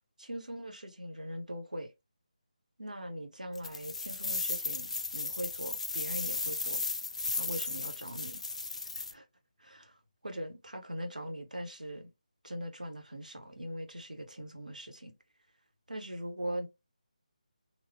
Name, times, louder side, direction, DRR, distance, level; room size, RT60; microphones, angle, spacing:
voice 1, 0.2-1.9 2.8-6.8 7.3-8.4 8.9-9.3 9.6-10.0 10.2-12.1 12.4-15.1 15.9-16.7, equal, 80° right, 0.8 m, -41 dB
sound 1, 3.6-9.1, left 3 dB, 55° left, 0.3 m, -35 dB
3.0 x 2.0 x 2.6 m
figure-of-eight pair, 155°, 4 cm